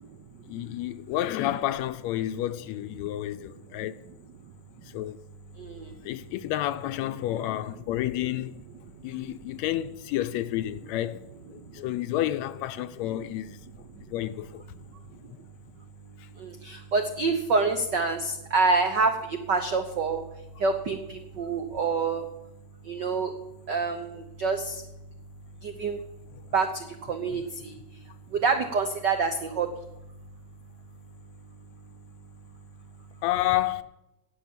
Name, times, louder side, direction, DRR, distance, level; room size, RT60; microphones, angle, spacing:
voice 1, 0.5-4.0 4.9-5.2 6.0-8.5 9.0-11.2 11.5-13.6 14.1-14.6 16.2-16.3 27.3-27.4 33.2-33.8, left 13 dB, 80° left, 1.8 m, -30 dB
voice 2, 16.4-20.2 20.6-22.2 22.9-23.3 23.7-24.8 25.6-26.0 26.5-27.8 28.4-29.7, right 4 dB, 80° right, 0.9 m, -27 dB
17.5 x 7.0 x 7.4 m
omnidirectional pair, 3.4 m